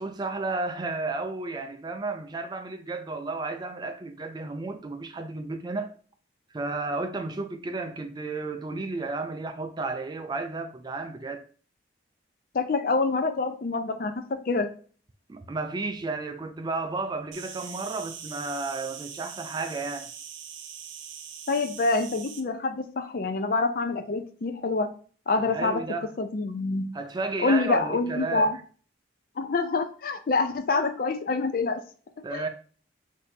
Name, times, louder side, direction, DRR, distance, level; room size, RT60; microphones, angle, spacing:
voice 1, 0.0-6.0 6.5-11.4 15.3-20.1 25.5-26.1 26.9-28.5 32.2-32.5, right 3 dB, 20° right, 0.3 m, -32 dB
voice 2, 12.5-14.7 21.5-25.0 25.3-25.8 26.2-27.0 27.4-28.6 29.4-31.8 32.2-32.4, left 3 dB, 50° left, 0.4 m, -26 dB
Insect, 17.3-22.4, right 8 dB, 80° right, 0.6 m, -42 dB
6.2 x 2.7 x 2.7 m
head